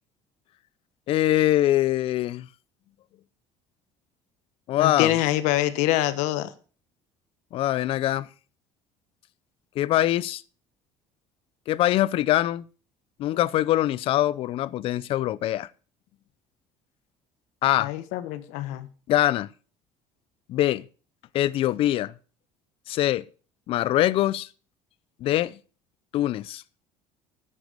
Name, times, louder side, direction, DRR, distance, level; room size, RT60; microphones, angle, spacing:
voice 1, 1.1-2.5 4.7-5.1 7.5-8.3 9.8-10.4 11.7-12.6 13.2-15.7 17.6-17.9 19.1-19.5 20.5-20.8 21.3-22.1 22.9-23.2 23.7-24.5 25.2-25.6 26.1-26.6, left 14 dB, 50° left, 0.6 m, -23 dB
voice 2, 4.8-6.5 17.8-18.9, left 14 dB, 85° left, 1.3 m, -25 dB
9.9 x 9.4 x 6.7 m
cardioid pair, 155°, 12 cm